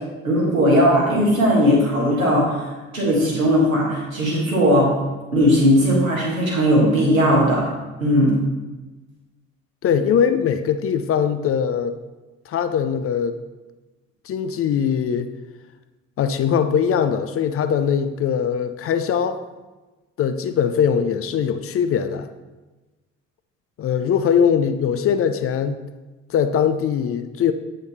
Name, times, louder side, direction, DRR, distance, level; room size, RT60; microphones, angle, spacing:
voice 1, 0.2-2.6 2.9-4.9 5.3-7.6 8.0-8.3, equal, 85° right, -5 dB, 1.6 m, -18 dB
voice 2, 9.8-11.9 12.5-13.4 14.3-15.3 16.2-19.4 20.2-22.3 23.8-25.8 26.3-27.5, left 7 dB, 35° left, 10 dB, 0.5 m, -21 dB
7.9 x 5.0 x 4.2 m, 1.2 s
figure-of-eight pair, 50°, 40 cm